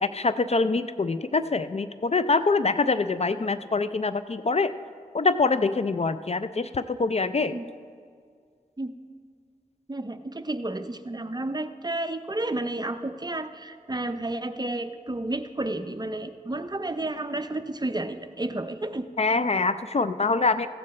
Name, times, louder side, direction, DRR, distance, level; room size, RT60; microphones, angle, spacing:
voice 1, 0.0-4.7 5.1-7.6 19.2-20.7, left 3 dB, 45° left, 12 dB, 0.4 m, -24 dB
voice 2, 9.9-19.1, right 2 dB, 25° right, 9 dB, 0.6 m, -31 dB
14.5 x 8.5 x 4.2 m, 2.1 s
wide cardioid pair, 55°, 15 cm